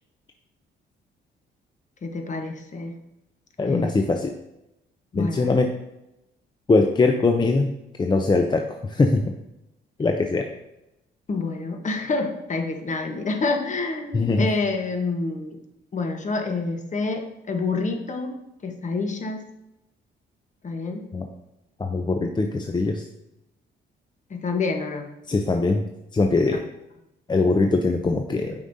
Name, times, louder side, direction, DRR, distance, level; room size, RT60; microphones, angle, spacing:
voice 1, 2.0-2.9 3.7-3.9 5.1-5.5 11.3-15.6 15.9-18.3 18.6-19.4 20.6-21.1 24.3-25.1, left 3 dB, 40° left, 4 dB, 1.1 m, -28 dB
voice 2, 3.6-4.3 5.1-5.7 6.7-7.7 8.0-8.6 8.9-9.2 10.0-10.4 14.1-14.5 21.1-21.2 21.8-23.0 25.3-25.8 26.1-26.6 27.3-28.5, left 3 dB, 20° left, 3 dB, 0.5 m, -21 dB
8.2 x 5.2 x 2.7 m, 0.89 s
cardioid pair, 90°, 20 cm